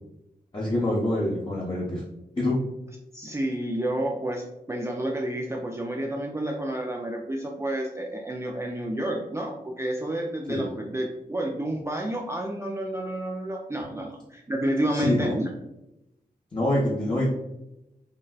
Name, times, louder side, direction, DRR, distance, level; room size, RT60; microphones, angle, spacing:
voice 1, 0.5-2.0 2.4-2.6 10.5-10.6 14.9-15.4 16.5-17.3, left 1 dB, 30° left, -6 dB, 0.8 m, -25 dB
voice 2, 3.1-15.5, right 1 dB, 15° right, 0 dB, 0.4 m, -30 dB
3.9 x 2.1 x 2.3 m, 0.91 s
cardioid pair, 55°, 16 cm